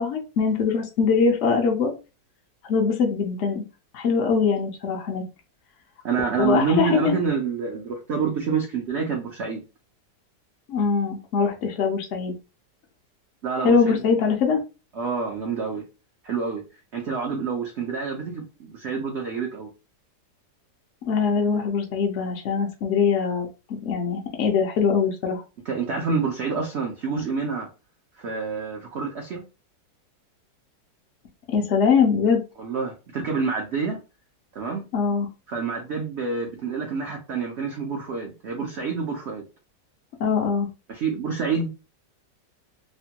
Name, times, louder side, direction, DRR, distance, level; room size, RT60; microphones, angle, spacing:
voice 1, 0.0-1.9 2.6-3.6 3.9-5.2 6.4-7.2 10.7-12.3 13.6-14.6 21.1-25.4 31.5-32.4 34.9-35.3 40.2-40.7, left 5 dB, 70° left, 0.7 m, -22 dB
voice 2, 6.0-9.6 13.4-14.0 14.9-15.8 16.2-16.6 16.9-19.7 25.7-27.7 28.2-29.4 32.6-34.0 34.5-34.8 35.5-39.4 40.9-41.7, right 5 dB, 75° right, 0.6 m, -27 dB
3.3 x 2.2 x 2.8 m
omnidirectional pair, 1.9 m